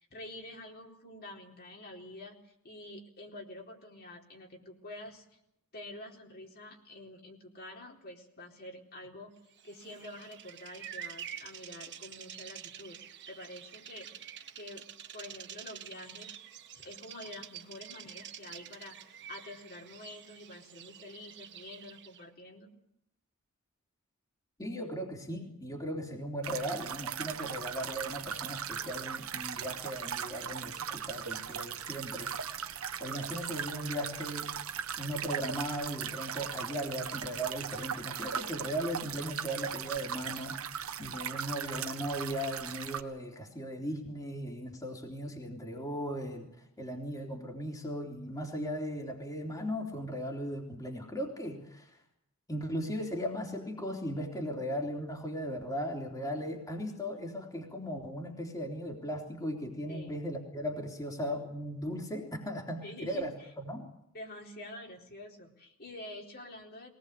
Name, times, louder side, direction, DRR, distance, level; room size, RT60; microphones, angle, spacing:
voice 1, 0.0-5.2 5.7-9.3 9.6-13.0 13.3-14.3 14.6-14.8 15.1-16.4 16.8-22.7 59.9-60.2 62.8-63.3 64.1-66.9, left 1 dB, 50° left, 0 dB, 4.1 m, -47 dB
Bird vocalization bird call bird song, 9.6-22.3, right 9 dB, 55° right, 1.7 m, -48 dB
voice 2, 24.6-32.3 33.0-34.5 35.0-40.7 41.0-46.5 46.8-51.9 52.5-63.9, equal, 15° left, 0 dB, 3.5 m, -37 dB
sound 1, 26.4-43.0, right 8 dB, 70° right, 1.6 m, -38 dB
22.5 x 19.0 x 8.2 m, 0.78 s
head